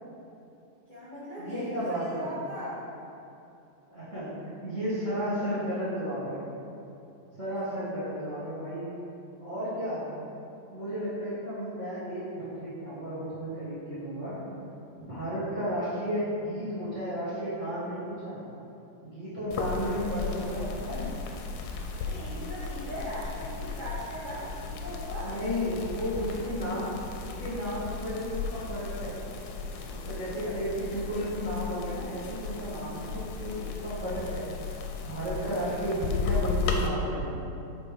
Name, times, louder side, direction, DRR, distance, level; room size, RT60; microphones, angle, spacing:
voice 1, 0.9-2.8 7.7-7.8 21.9-25.4, equal, 35° left, -11 dB, 0.8 m, -39 dB
voice 2, 1.4-2.3 3.9-6.4 7.3-8.9 9.4-10.1 10.7-14.4 15.0-18.4 19.0-21.1 25.2-29.2 29.9-34.4 35.0-37.3, equal, 35° right, -11 dB, 1.3 m, -33 dB
sound 1, 19.5-36.9, left 4 dB, 80° left, 1.9 m, -35 dB
5.4 x 5.2 x 4.9 m, 2.8 s
omnidirectional pair, 3.7 m